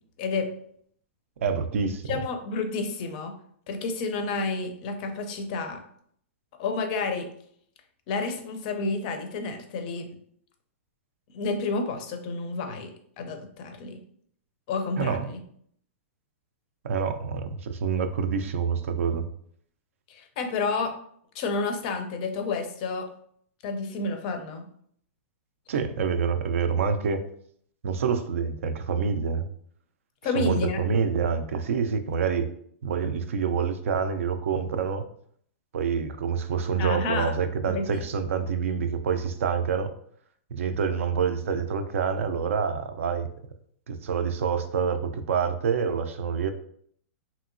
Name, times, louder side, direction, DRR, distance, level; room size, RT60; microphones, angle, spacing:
voice 1, 0.2-0.5 2.1-3.3 3.7-5.8 6.6-7.3 8.1-10.1 11.3-12.9 13.2-14.0 14.7-15.4 20.1-20.9 21.3-23.1 23.6-24.7 30.2-30.8 36.8-37.3 37.7-37.8, left 4 dB, 35° left, 6 dB, 0.4 m, -30 dB
voice 2, 1.4-2.2 15.0-15.3 16.8-19.3 25.7-27.2 27.8-29.5 30.4-32.5 32.8-35.0 35.7-39.9 40.5-43.3 43.9-46.5, right 6 dB, 75° right, 8 dB, 0.4 m, -27 dB
2.8 x 2.7 x 2.5 m, 0.64 s
hypercardioid pair, 165°, 7 cm